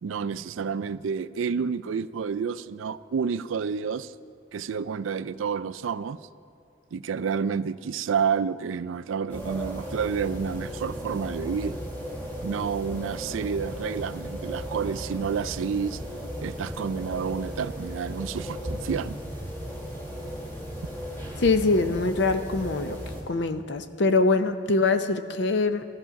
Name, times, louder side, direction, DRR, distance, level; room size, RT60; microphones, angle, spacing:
voice 1, 0.0-4.1 4.5-6.2 6.9-11.8 12.4-16.0 16.4-19.2, right 6 dB, 85° right, 15 dB, 0.4 m, -29 dB
sound 1, 9.3-23.2, equal, 10° left, 2.0 m, -36 dB
voice 2, 21.4-23.0 23.3-25.8, left 3 dB, 65° left, 9 dB, 0.7 m, -23 dB
13.5 x 12.5 x 5.9 m, 2.4 s
head